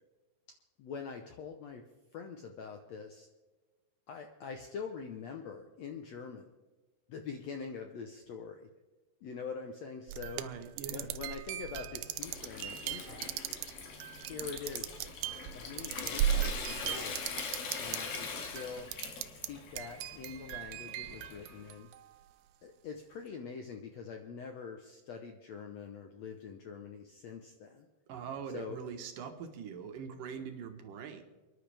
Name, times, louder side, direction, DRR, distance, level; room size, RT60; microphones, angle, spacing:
voice 1, 0.8-1.8 2.1-3.3 4.1-6.4 7.1-8.6 9.2-10.4 10.9-13.5 14.2-15.1 15.4-17.2 17.8-18.9 19.3-21.9 22.6-27.9 28.5-28.8, left 5 dB, 70° left, 4 dB, 1.7 m, -44 dB
sound 1, 10.1-18.2 18.5-19.5 19.8-22.2, right 11 dB, 85° right, 2.5 m, -37 dB
voice 2, 10.4-11.2 28.1-31.2, right 7 dB, 70° right, 5 dB, 2.8 m, -43 dB
Water tap faucet / Sink (filling or washing) / Trickle dribble, 11.8-21.7, left 5 dB, 90° left, 4.0 m, -43 dB
29.0 x 10.5 x 3.4 m, 1.2 s
omnidirectional pair, 4.2 m